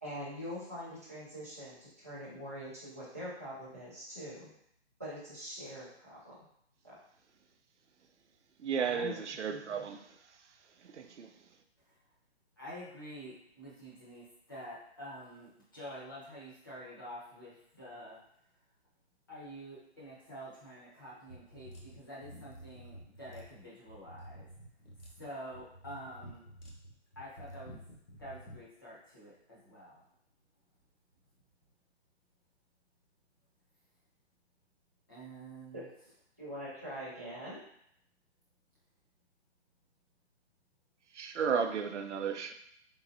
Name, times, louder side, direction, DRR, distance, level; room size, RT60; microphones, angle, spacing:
voice 1, 0.0-4.5 5.0-6.3 6.8-6.9 8.8-9.2 9.5-9.9 35.7-35.8 36.4-37.6, equal, 15° right, -10 dB, 0.6 m, -43 dB
voice 2, 8.6-10.0 10.9-11.3 41.1-42.5, right 6 dB, 85° right, 7 dB, 0.6 m, -33 dB
voice 3, 12.6-18.2 19.3-24.5 25.1-26.5 27.2-27.8 28.2-30.1 35.1-35.8, equal, 20° left, -8 dB, 0.8 m, -48 dB
sound 1, 21.3-28.6, equal, 55° left, 1.1 m, -51 dB
4.2 x 3.8 x 2.6 m, 0.72 s
hypercardioid pair, 180°, 34 cm